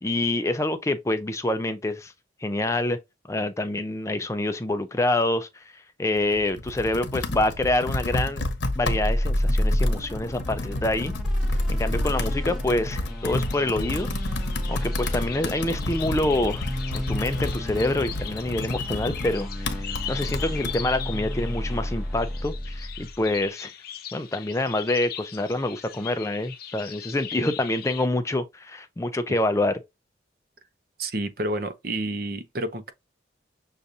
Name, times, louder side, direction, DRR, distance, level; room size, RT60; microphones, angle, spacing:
voice 1, 0.0-2.1 2.4-3.0 3.3-8.5 8.8-11.1 11.7-14.1 14.7-16.7 16.9-19.7 20.1-23.7 24.1-29.8, left 2 dB, 15° left, 0.4 m, -26 dB
Computer keyboard, 6.2-20.8, left 2 dB, 80° left, 1.0 m, -32 dB
sound 1, 8.7-23.2, left 1 dB, ahead, 1.1 m, -30 dB
sound 2, 13.1-28.1, left 9 dB, 55° left, 0.8 m, -40 dB
voice 2, 31.0-32.9, right 1 dB, 55° right, 0.7 m, -29 dB
6.6 x 2.4 x 2.7 m
head